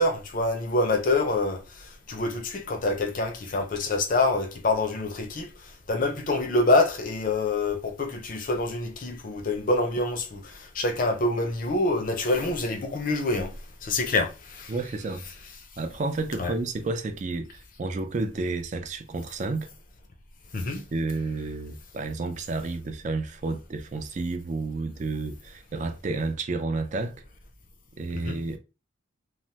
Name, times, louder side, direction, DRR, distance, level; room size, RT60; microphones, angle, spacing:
voice 1, 0.0-5.5 5.9-13.5 13.8-14.7 16.4-16.5 20.5-20.8 28.1-28.4, left 2 dB, 45° left, 0.5 m, -26 dB
voice 2, 14.7-15.2 15.8-19.7 20.9-27.2 28.0-28.6, right 3 dB, 40° right, 0.3 m, -31 dB
3.2 x 2.0 x 2.8 m
head